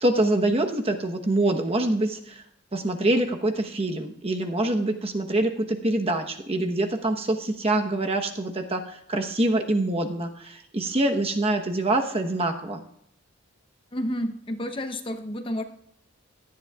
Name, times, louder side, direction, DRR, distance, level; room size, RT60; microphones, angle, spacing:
voice 1, 0.0-2.4 2.7-12.8, right 2 dB, 30° right, 4 dB, 1.0 m, -25 dB
voice 2, 13.9-15.6, equal, 25° left, 7 dB, 0.8 m, -30 dB
17.0 x 12.0 x 2.4 m, 0.71 s
head